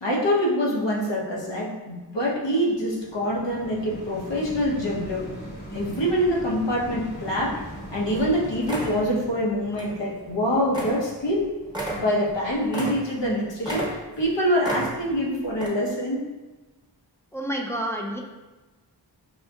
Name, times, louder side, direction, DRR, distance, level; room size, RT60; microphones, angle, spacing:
voice 1, 0.0-5.2 5.7-7.6 7.9-11.5 12.0-13.9 14.2-16.2, equal, 75° left, -3 dB, 1.0 m, -25 dB
sound 1, 2.2-13.5 14.1-14.2, equal, 25° left, 0.9 m, -41 dB
sound 2, 7.7-7.8 8.1-8.3 8.6-9.0 9.7-9.9 10.3-10.4 10.7-11.0 11.3-11.4 11.7-13.3 13.6-14.3 14.6-15.2 15.5-15.7, right 1 dB, 10° right, 0.9 m, -32 dB
voice 2, 17.3-18.2, right 1 dB, 5° left, 0 dB, 0.4 m, -29 dB
5.3 x 2.6 x 2.3 m, 1.2 s
wide cardioid pair, 80°, 43 cm